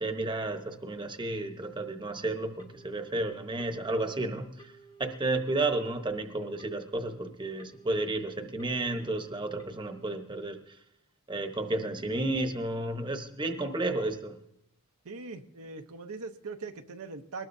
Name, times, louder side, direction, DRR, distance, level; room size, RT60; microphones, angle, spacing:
voice 1, 0.0-4.7 5.0-10.6 11.3-14.4, right 2 dB, 20° right, 6 dB, 1.0 m, -32 dB
Telephone, 2.6-3.1 3.6-4.1 4.6-5.1 5.6-6.1 6.6-7.1 7.6-8.1 8.6-9.1 9.6-10.1, right 3 dB, 20° left, 0.8 m, -54 dB
voice 2, 15.0-17.5, right 4 dB, 75° right, 5 dB, 0.8 m, -41 dB
22.5 x 19.5 x 2.7 m, 0.78 s
head